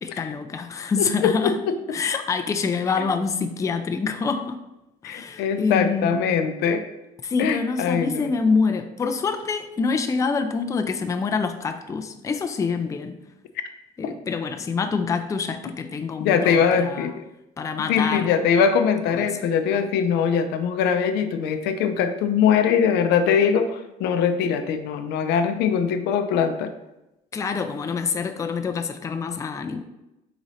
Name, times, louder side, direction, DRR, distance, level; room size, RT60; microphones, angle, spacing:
voice 1, 0.0-1.6 1.9-4.6 5.0-6.1 7.2-13.2 14.0-17.1 17.6-18.3 19.1-19.3 27.3-29.8, left 5 dB, 20° left, 7 dB, 0.3 m, -26 dB
voice 2, 1.0-1.8 3.0-3.1 5.0-6.9 7.4-8.3 14.0-14.1 16.2-17.3 17.8-26.7, left 7 dB, 85° left, 8 dB, 0.4 m, -22 dB
3.8 x 3.0 x 4.1 m, 0.92 s
cardioid pair, 110°, 17 cm